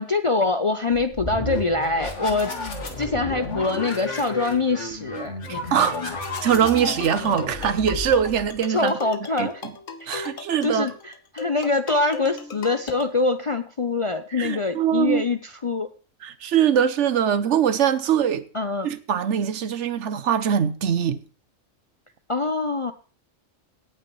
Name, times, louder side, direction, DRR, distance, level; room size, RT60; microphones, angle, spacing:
voice 1, 0.0-2.5 3.0-6.2 8.7-9.6 10.0-10.3 10.6-15.9 18.5-18.9 22.3-22.9, left 3 dB, 40° left, 0.5 m, -24 dB
sound 1, 0.9-8.6, left 2 dB, 70° left, 2.3 m, -33 dB
voice 2, 5.5-6.1 6.4-8.9 9.4-9.7 10.1-10.9 14.4-15.2 16.2-18.5 18.8-21.2, right 8 dB, 70° right, 1.0 m, -22 dB
sound 2, 6.2-13.1, left 5 dB, 85° left, 1.5 m, -37 dB
17.5 x 8.8 x 3.1 m
omnidirectional pair, 1.3 m